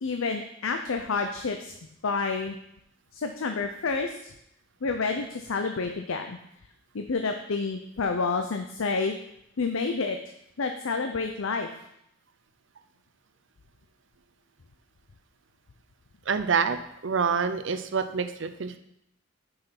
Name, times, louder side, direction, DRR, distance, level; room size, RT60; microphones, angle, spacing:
voice 1, 0.0-1.7 2.0-2.6 3.1-4.3 4.8-6.4 6.9-9.1 9.6-10.2 10.6-11.7, left 4 dB, 80° left, 5 dB, 0.6 m, -29 dB
voice 2, 16.3-16.8 17.0-18.8, right 5 dB, 65° right, 9 dB, 0.6 m, -26 dB
6.8 x 5.6 x 5.8 m, 0.78 s
head